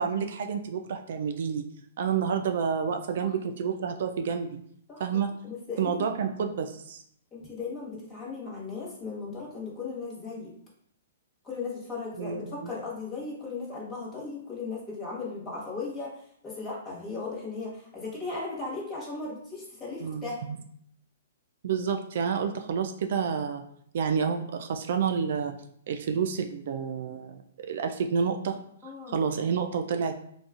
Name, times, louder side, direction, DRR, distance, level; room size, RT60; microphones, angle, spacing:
voice 1, 0.0-1.6 2.0-4.6 5.0-5.3 5.8-7.0 12.2-12.7 20.0-20.6 21.6-23.7 23.9-25.6 25.9-28.6 29.1-30.2, right 6 dB, 65° right, 6 dB, 0.3 m, -29 dB
voice 2, 5.4-5.9 7.3-10.5 11.4-20.4 28.8-29.2, left 4 dB, 15° left, -5 dB, 1.3 m, -37 dB
3.9 x 2.4 x 2.4 m, 0.67 s
hypercardioid pair, 135°, 0 cm